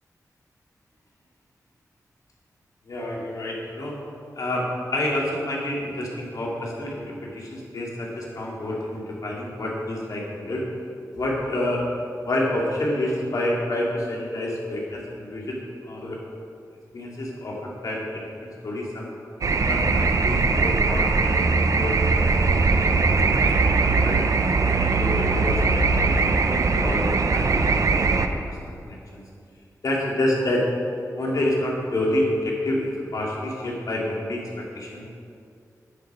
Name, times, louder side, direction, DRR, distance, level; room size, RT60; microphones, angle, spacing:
voice 1, 2.9-4.0 4.4-10.7 11.1-11.9 12.2-16.2 16.9-19.1 19.7-22.7 23.0-24.2 24.6-28.6 28.8-29.2 29.8-30.7 31.2-35.1, left 1 dB, 65° left, -4 dB, 2.8 m, -28 dB
sound 1, 19.4-28.3, right 3 dB, 60° right, 0.7 m, -21 dB
10.5 x 10.0 x 5.0 m, 2.4 s
wide cardioid pair, 105°, 6 cm